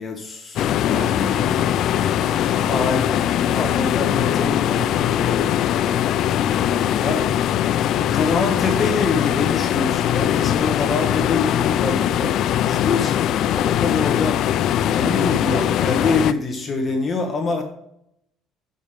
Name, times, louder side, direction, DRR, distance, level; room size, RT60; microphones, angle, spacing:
voice 1, 0.0-1.9 2.6-6.0 7.0-7.3 7.9-17.6, left 3 dB, 25° left, 2 dB, 1.2 m, -26 dB
sound 1, 0.6-16.3, left 11 dB, 55° left, 0.4 m, -21 dB
voice 2, 0.9-3.2 3.5-5.4 6.7-7.5 15.3-16.4, right 4 dB, 25° right, 5 dB, 0.7 m, -39 dB
7.1 x 5.3 x 6.7 m, 0.75 s
cardioid pair, 135°, 0 cm